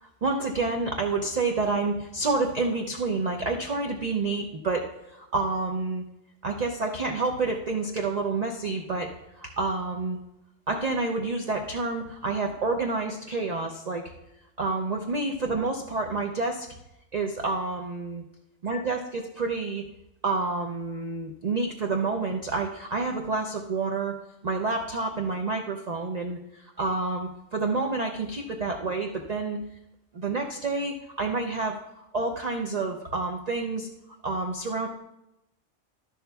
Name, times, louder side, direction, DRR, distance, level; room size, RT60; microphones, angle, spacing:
voice 1, 0.0-6.0 6.4-9.1 9.4-10.2 10.7-14.0 14.6-16.7 17.1-18.2 18.6-19.8 20.2-24.2 24.4-29.6 30.1-33.9 34.2-34.9, right 3 dB, 45° right, 2 dB, 0.5 m, -29 dB
11.5 x 11.0 x 2.3 m, 0.88 s
omnidirectional pair, 1.4 m